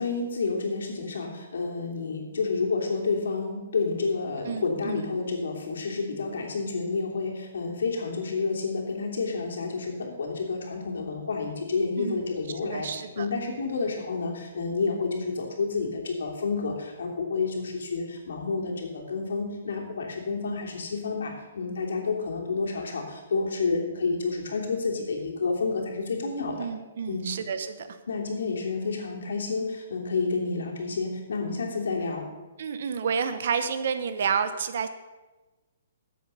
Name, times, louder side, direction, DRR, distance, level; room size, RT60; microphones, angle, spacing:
voice 1, 0.0-12.9 13.2-26.7 27.1-27.2 28.1-32.3, left 4 dB, 80° left, 0 dB, 3.0 m, -29 dB
voice 2, 4.4-5.1 12.0-13.3 26.6-28.0 32.6-34.9, right 6 dB, 55° right, 10 dB, 1.0 m, -30 dB
13.5 x 7.8 x 5.6 m, 1.2 s
hypercardioid pair, 170°, 0 cm